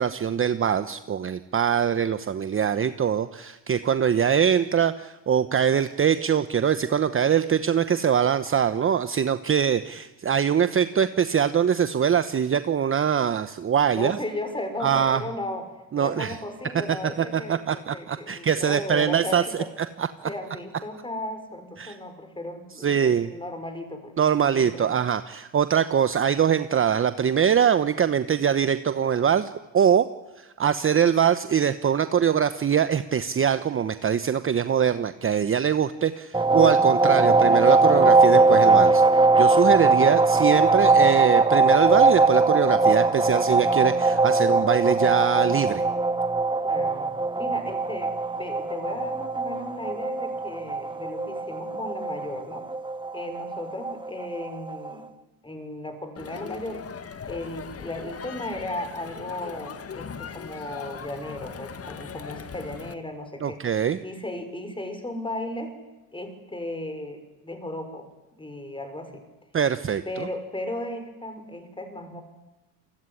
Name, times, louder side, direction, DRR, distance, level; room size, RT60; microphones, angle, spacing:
voice 1, 0.0-14.2 14.8-15.2 15.9-16.4 17.2-19.6 20.0-20.1 21.8-22.0 22.8-23.3 24.2-30.1 30.4-39.0 39.4-45.8 63.4-64.0 69.5-70.3, right 8 dB, 25° right, 11 dB, 1.1 m, -23 dB
voice 2, 13.9-15.7 15.9-19.7 20.2-24.1 24.4-25.0 46.6-47.1 47.4-52.7 53.1-55.0 55.4-56.9 57.3-63.6 64.0-65.7 66.1-69.2 70.1-72.2, left 1 dB, 10° left, 7 dB, 6.0 m, -35 dB
sound 1, 36.3-54.9, right 3 dB, 10° right, 1.3 m, -21 dB
Crowd, 56.2-62.9, left 7 dB, 30° left, 1.7 m, -39 dB
28.5 x 21.0 x 10.0 m, 1.0 s
cardioid pair, 110°, 47 cm